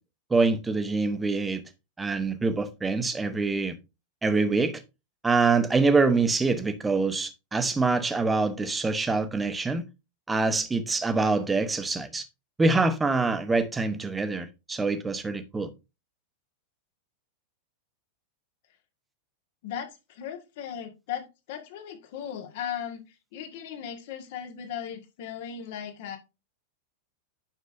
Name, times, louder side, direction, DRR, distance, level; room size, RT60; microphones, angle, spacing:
voice 1, 0.3-1.6 2.0-3.8 4.2-4.8 5.2-9.8 10.3-12.3 12.6-15.7, right 3 dB, 10° right, 1.0 m, -25 dB
voice 2, 19.6-26.2, left 9 dB, 55° left, 1.8 m, -37 dB
9.4 x 6.6 x 2.6 m
figure-of-eight pair, 90°, 0 cm